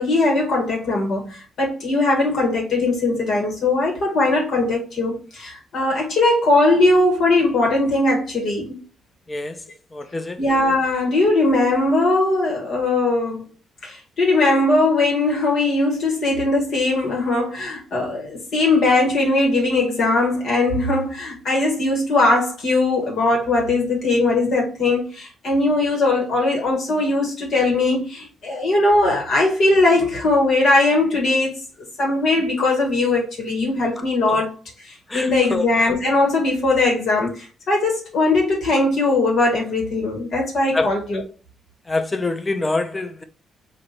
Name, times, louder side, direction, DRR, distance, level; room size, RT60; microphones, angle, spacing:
voice 1, 0.0-8.8 10.4-13.4 13.8-31.6 32.0-34.5 34.8-41.2, left 2 dB, 60° left, 1.6 m, -20 dB
voice 2, 9.3-9.6 9.9-10.4 34.3-34.4 35.1-35.7 40.7-40.9 41.9-43.2, left 2 dB, 20° left, 0.6 m, -25 dB
3.5 x 2.6 x 4.1 m
cardioid pair, 90°, 0 cm